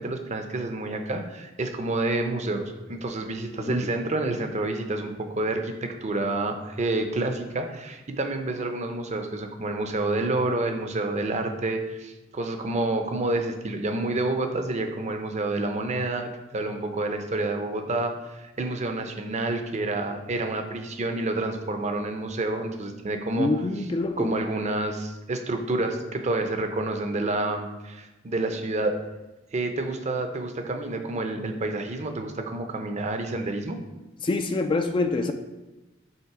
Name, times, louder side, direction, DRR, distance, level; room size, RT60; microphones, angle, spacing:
voice 1, 0.0-23.9 24.2-29.0 29.5-33.8, right 2 dB, 35° right, 5 dB, 0.6 m, -29 dB
voice 2, 23.4-24.3 34.2-35.3, left 3 dB, 25° left, 7 dB, 0.3 m, -25 dB
5.6 x 3.6 x 4.7 m, 1.0 s
head